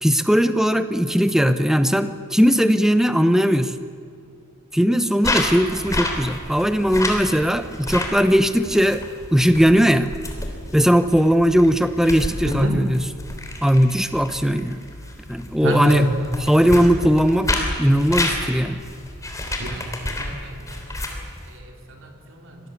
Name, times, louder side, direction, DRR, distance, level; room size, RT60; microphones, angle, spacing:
voice 1, 0.0-3.7 4.7-9.0 9.3-10.1 10.7-13.1 13.6-14.8 15.3-16.1 16.4-17.5 17.8-18.8, equal, ahead, 10 dB, 0.9 m, -18 dB
sound 1, 5.2-21.6, left 1 dB, 15° left, 3.2 m, -30 dB
voice 2, 15.6-16.1 19.6-19.8 20.1-20.8 21.1-21.2 21.5-21.6 21.9-22.5, equal, 60° right, 2 dB, 3.9 m, -25 dB
25.5 x 18.0 x 8.3 m, 2.3 s
head